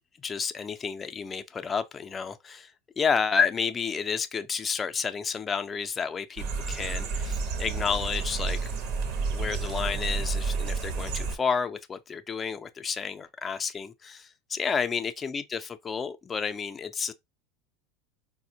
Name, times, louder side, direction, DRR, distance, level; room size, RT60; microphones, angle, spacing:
voice 1, 0.2-8.7 9.3-17.1, left 6 dB, 25° left, 0.4 m, -31 dB
sound 1, 6.4-11.4, right 4 dB, 60° right, 0.7 m, -30 dB
4.1 x 2.1 x 2.6 m
hypercardioid pair, 100°, 0 cm